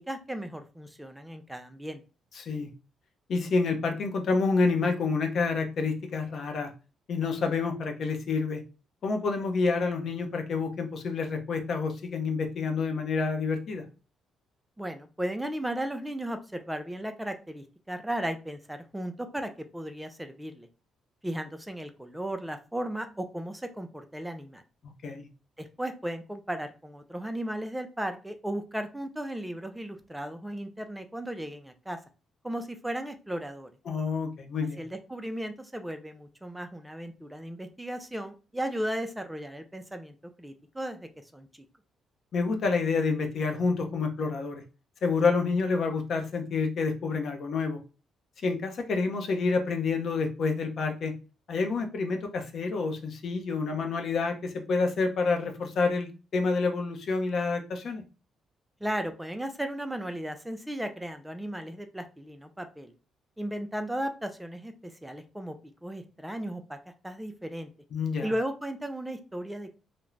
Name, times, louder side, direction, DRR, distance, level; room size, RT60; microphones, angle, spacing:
voice 1, 0.1-2.0 14.8-20.7 21.2-24.6 25.6-32.0 32.4-33.7 34.8-41.5 58.8-62.9 63.4-65.6 65.8-66.8 67.0-67.7 68.2-69.8, right 1 dB, 5° right, 7 dB, 0.3 m, -35 dB
voice 2, 2.3-2.7 3.3-6.7 7.1-8.6 9.0-13.8 25.0-25.3 33.9-34.8 42.3-44.6 45.0-47.8 48.4-51.1 51.5-58.0 67.9-68.3, left 4 dB, 60° left, 4 dB, 0.6 m, -28 dB
2.4 x 2.0 x 3.1 m, 0.33 s
cardioid pair, 90°, 0 cm